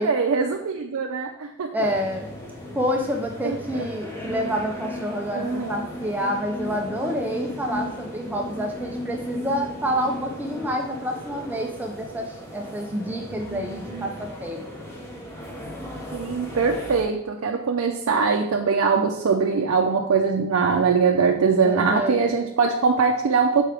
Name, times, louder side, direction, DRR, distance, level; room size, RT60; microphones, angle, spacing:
voice 1, 0.0-1.7 3.4-3.8 5.3-5.7 13.2-14.1 16.1-23.6, right 5 dB, 75° right, 3 dB, 0.5 m, -22 dB
voice 2, 1.7-2.3 2.8-14.6 21.6-22.3, equal, 10° right, 2 dB, 0.4 m, -28 dB
sound 1, 1.8-17.0, left 1 dB, 10° left, 0.9 m, -36 dB
6.0 x 4.6 x 3.4 m, 0.82 s
head